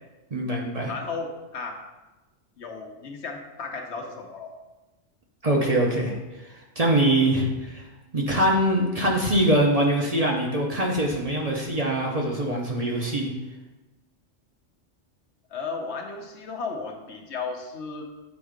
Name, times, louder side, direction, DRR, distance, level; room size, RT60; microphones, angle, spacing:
voice 1, 0.3-0.9 5.4-6.1 6.8-7.8 8.1-13.3, right 1 dB, 35° right, -1 dB, 0.8 m, -23 dB
voice 2, 0.8-1.8 2.6-4.5 15.5-18.0, left 4 dB, 65° left, 3 dB, 1.1 m, -34 dB
7.2 x 3.7 x 5.0 m, 1.1 s
omnidirectional pair, 1.2 m